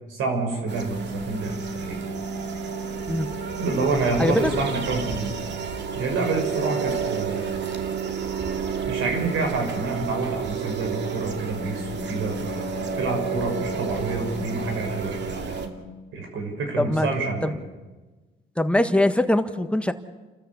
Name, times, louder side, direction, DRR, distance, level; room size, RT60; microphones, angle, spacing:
voice 1, 0.1-2.0 3.6-5.4 5.9-7.5 8.9-15.6 16.1-17.6, right 3 dB, 85° right, 2 dB, 6.6 m, -28 dB
sound 1, 0.7-15.7, right 5 dB, 65° right, 2.3 m, -30 dB
voice 2, 4.2-4.5 16.8-17.1 17.4-17.5 18.6-19.9, left 1 dB, 5° left, 8 dB, 1.5 m, -22 dB
30.0 x 13.5 x 8.3 m, 1.2 s
cardioid pair, 90°, 20 cm